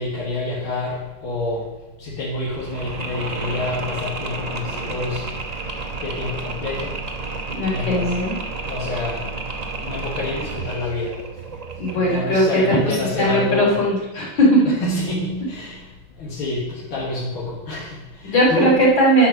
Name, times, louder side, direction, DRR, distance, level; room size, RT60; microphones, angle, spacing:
voice 1, 0.0-1.7 2.0-5.3 6.0-7.1 7.6-8.1 8.6-9.3 9.8-11.4 11.9-13.8 14.6-18.7, left 2 dB, 80° left, -6 dB, 2.6 m, -27 dB
Mechanisms, 2.5-12.3, right 3 dB, 55° right, 0.4 m, -31 dB
voice 2, 7.5-8.3 11.8-12.8 13.2-14.6 18.2-19.3, equal, 65° left, -6 dB, 3.7 m, -18 dB
10.5 x 5.7 x 6.2 m, 1.1 s
omnidirectional pair, 2.2 m